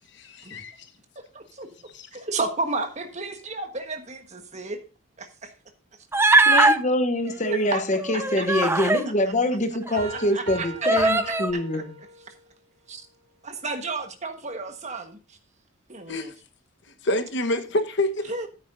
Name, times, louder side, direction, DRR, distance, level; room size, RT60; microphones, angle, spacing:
voice 1, 0.1-0.9 2.0-2.1 16.1-16.3 17.0-18.3, left 1 dB, 60° left, 1.2 m, -27 dB
voice 2, 1.1-4.8 5.2-5.5 7.4-8.9 9.2-9.3 9.9-11.8 12.3-12.4 12.9-13.1 13.4-15.4 15.9-16.3 18.2-18.5, right 3 dB, 35° right, 1.3 m, -33 dB
Human voice, 6.1-6.8 8.0-9.1 9.9-10.0 10.8-11.5, right 2 dB, 10° right, 0.5 m, -20 dB
voice 3, 6.5-11.9, left 1 dB, 35° left, 0.9 m, -25 dB
sound 1, 10.0-12.5, right 3 dB, 55° right, 2.3 m, -38 dB
14.0 x 8.8 x 2.6 m
head